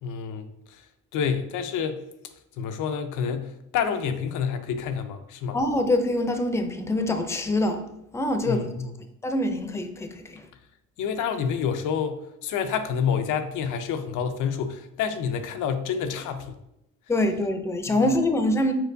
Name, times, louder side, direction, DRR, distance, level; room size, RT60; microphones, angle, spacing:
voice 1, 0.0-0.8 1.1-2.0 2.6-5.6 8.5-8.9 11.0-16.6 17.9-18.0, left 7 dB, 85° left, 0.6 m, -28 dB
voice 2, 5.5-7.8 8.1-8.6 9.2-10.4 17.1-18.7, left 1 dB, 10° left, 0.5 m, -24 dB
4.5 x 4.3 x 2.6 m
cardioid pair, 90°, 30 cm